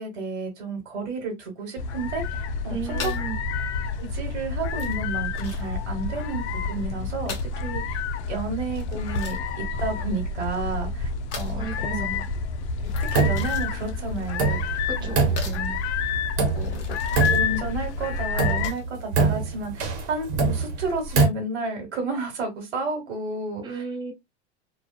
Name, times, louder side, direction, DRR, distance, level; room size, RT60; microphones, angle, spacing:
voice 1, 0.0-2.2 2.6-3.1 4.0-7.3 7.6-8.0 8.3-9.4 9.8-11.1 11.3-12.0 13.1-14.6 15.0-15.2 16.4-17.0 17.3-23.8, right 3 dB, 85° right, 1.2 m, -31 dB
sound 1, 1.8-18.7, left 4 dB, 75° left, 0.5 m, -29 dB
voice 2, 2.7-3.4 11.6-12.2 14.9-15.8 23.6-24.1, right 5 dB, 15° right, 0.6 m, -34 dB
sound 2, 2.9-19.0, left 5 dB, 45° left, 1.0 m, -42 dB
sound 3, 12.9-13.7 13.9-14.0 14.4-15.9 16.4-16.9 17.2-17.9 18.4-21.3, right 4 dB, 50° right, 1.1 m, -23 dB
2.6 x 2.3 x 2.2 m
hypercardioid pair, 115°, 34 cm